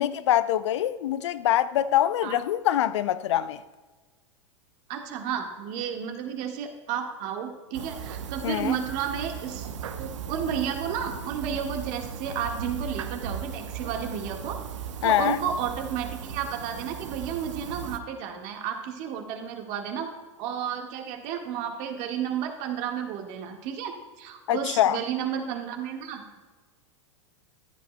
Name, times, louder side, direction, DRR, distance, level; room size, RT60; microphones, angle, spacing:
voice 1, 0.0-3.6 8.4-8.7 15.0-15.4 24.5-25.0, left 12 dB, 65° left, 0.5 m, -24 dB
voice 2, 4.9-9.7 10.0-14.6 15.0-20.1 20.4-26.4, right 8 dB, 50° right, 1.6 m, -32 dB
sound 1, 7.7-18.0, right 7 dB, 70° right, 0.9 m, -37 dB
14.5 x 11.0 x 2.2 m
hypercardioid pair, 95°, 16 cm